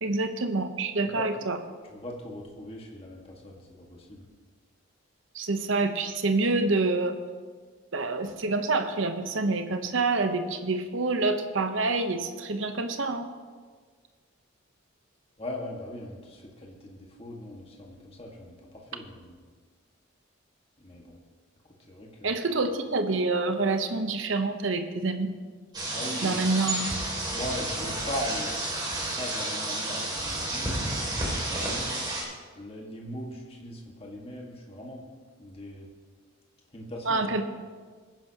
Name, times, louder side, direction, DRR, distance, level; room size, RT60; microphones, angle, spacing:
voice 1, 0.0-1.6 5.3-7.2 7.9-13.3 22.2-25.3 26.2-26.8 37.1-37.4, right 3 dB, 65° right, 7 dB, 0.9 m, -27 dB
voice 2, 1.9-4.2 15.4-19.4 20.8-21.2 21.9-22.4 25.9-26.5 27.3-28.5 29.1-32.0 32.5-35.0 35.4-35.9 36.7-37.4, left 1 dB, 30° left, -1 dB, 1.7 m, -40 dB
sound 1, 25.7-32.2, right 1 dB, 20° right, 2.5 m, -31 dB
20.0 x 10.5 x 2.9 m, 1.5 s
head